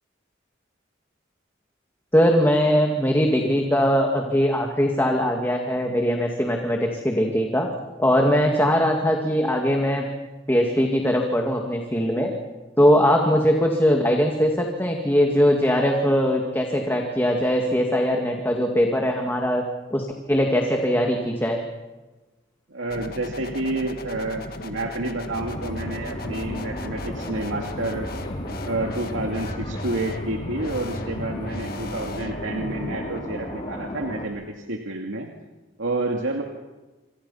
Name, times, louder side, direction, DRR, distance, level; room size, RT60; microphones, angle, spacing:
voice 1, 2.1-7.7 8.0-10.0 10.5-12.3 12.8-19.6 19.9-21.6, equal, 10° left, 1 dB, 2.2 m, -21 dB
voice 2, 22.7-28.1 28.5-35.3 35.8-36.4, right 2 dB, 85° right, 2 dB, 2.4 m, -29 dB
sound 1, 22.9-33.2, left 2 dB, 50° left, 1.7 m, -37 dB
sound 2, 25.3-34.3, equal, 30° left, 4.8 m, -34 dB
28.5 x 27.0 x 5.7 m, 1.2 s
head